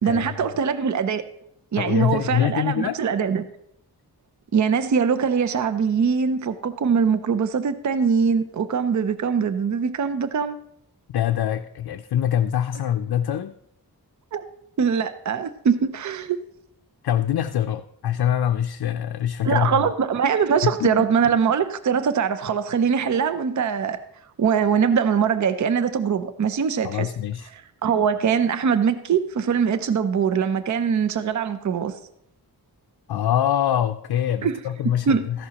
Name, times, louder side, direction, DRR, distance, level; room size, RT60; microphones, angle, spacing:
voice 1, 0.0-1.2 1.7-3.5 4.5-10.6 14.3-14.4 14.8-16.4 19.4-24.0 24.4-27.1 27.5-31.9 34.4-34.6 35.1-35.2, right 6 dB, 50° right, 11 dB, 0.5 m, -22 dB
voice 2, 1.8-3.0 11.1-13.5 17.0-19.9 20.6-21.1 26.8-27.5 33.1-35.5, left 10 dB, 75° left, 7 dB, 0.5 m, -24 dB
14.0 x 11.0 x 2.9 m, 0.74 s
wide cardioid pair, 125°, 38 cm